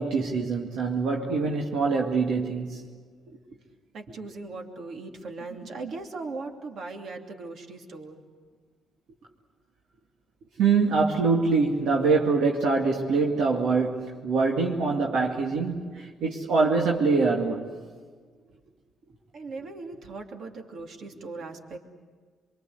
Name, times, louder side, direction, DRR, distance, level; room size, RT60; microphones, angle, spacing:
voice 1, 0.0-2.8 10.6-17.7, right 4 dB, 80° right, -1 dB, 2.3 m, -24 dB
voice 2, 3.9-8.2 19.1-21.8, right 3 dB, 65° right, 3 dB, 2.9 m, -39 dB
25.5 x 24.0 x 8.1 m, 1.6 s
cardioid pair, 90°, 0 cm